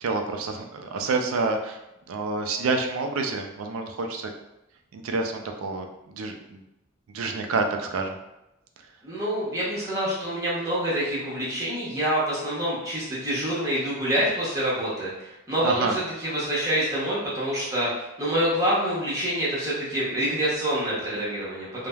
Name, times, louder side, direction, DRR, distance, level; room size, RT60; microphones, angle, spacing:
voice 1, 0.0-1.8 2.1-4.3 4.9-6.6 7.1-8.2 15.6-16.0, right 3 dB, 75° right, 4 dB, 0.3 m, -28 dB
voice 2, 9.0-21.9, equal, 15° right, -8 dB, 0.8 m, -27 dB
3.2 x 2.1 x 2.3 m, 0.93 s
head